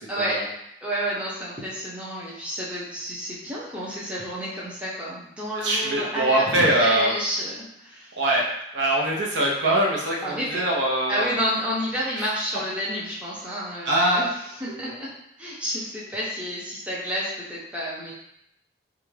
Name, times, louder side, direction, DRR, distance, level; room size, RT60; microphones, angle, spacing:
voice 1, 0.1-0.4 0.8-8.2 10.2-10.6 11.1-14.3 14.6-15.1 15.4-18.1, equal, 5° right, -8 dB, 0.6 m, -30 dB
voice 2, 5.6-7.1 8.2-8.4 8.7-11.3 12.2-12.3 13.8-14.2, right 1 dB, 70° right, -3 dB, 0.6 m, -22 dB
2.4 x 2.2 x 3.1 m, 0.77 s
head